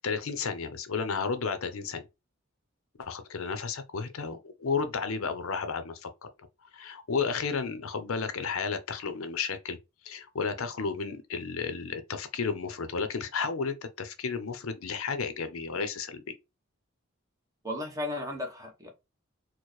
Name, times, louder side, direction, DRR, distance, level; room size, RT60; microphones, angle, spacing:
voice 1, 0.0-2.0 3.0-6.1 6.7-9.8 10.0-16.4, left 5 dB, 75° left, 0.6 m, -32 dB
voice 2, 17.6-18.9, left 1 dB, 15° right, 0.8 m, -34 dB
4.4 x 2.1 x 3.0 m
head